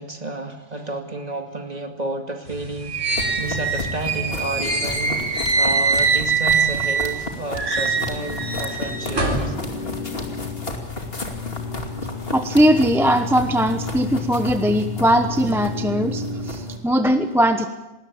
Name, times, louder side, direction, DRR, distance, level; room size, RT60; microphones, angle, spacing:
voice 1, 0.0-5.3 5.6-9.6, right 2 dB, 35° right, 4 dB, 2.4 m, -31 dB
sound 1, 2.5-7.2 7.5-9.5, right 4 dB, 90° right, 4.4 m, -23 dB
sound 2, 3.1-16.8, left 3 dB, 50° left, 2.8 m, -31 dB
voice 2, 12.3-17.7, equal, ahead, 7 dB, 0.9 m, -19 dB
20.0 x 19.0 x 8.6 m, 1.0 s
omnidirectional pair, 1.3 m